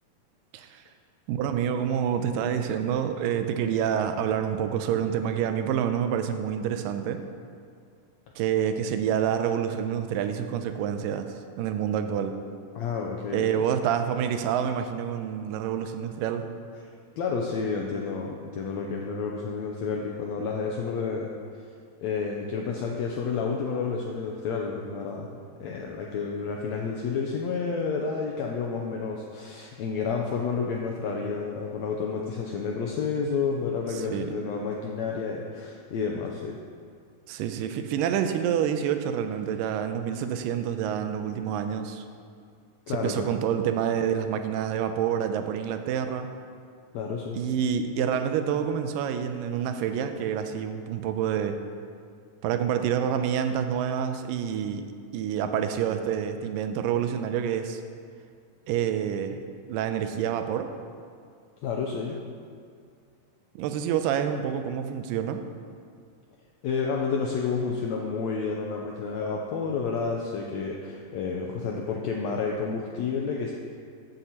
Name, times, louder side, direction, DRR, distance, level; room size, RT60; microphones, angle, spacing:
voice 1, 1.3-7.2 8.4-12.4 13.3-16.5 33.9-34.3 37.3-42.0 42.9-46.3 47.4-51.6 52.4-57.8 58.7-59.4 59.7-60.7 63.6-65.4, right 8 dB, 85° right, 8 dB, 2.2 m, -27 dB
voice 2, 12.7-13.5 17.2-21.3 22.0-25.3 25.6-36.6 42.9-43.4 46.9-47.4 61.6-62.2 66.6-73.5, left 5 dB, 85° left, 0 dB, 1.6 m, -30 dB
14.5 x 8.2 x 2.9 m, 2.2 s
omnidirectional pair, 3.9 m